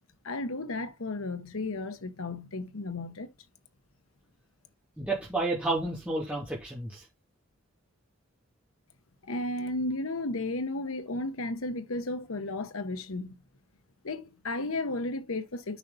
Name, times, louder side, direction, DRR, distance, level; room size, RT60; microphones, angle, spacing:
voice 1, 0.2-3.3 9.2-13.3 14.0-15.8, left 2 dB, 90° left, 0.9 m, -34 dB
voice 2, 5.0-7.0, right 2 dB, 5° right, 2.7 m, -31 dB
9.3 x 5.6 x 4.0 m
head